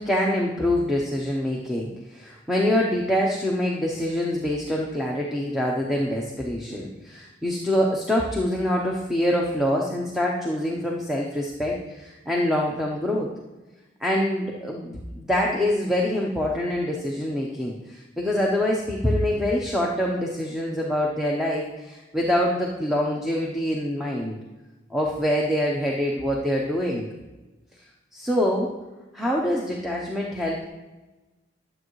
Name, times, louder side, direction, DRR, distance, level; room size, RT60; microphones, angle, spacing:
voice 1, 0.0-13.3 14.0-24.4 24.9-27.1 28.1-28.7 29.1-30.6, left 1 dB, ahead, -2 dB, 0.9 m, -25 dB
12.0 x 7.6 x 3.2 m, 1.1 s
head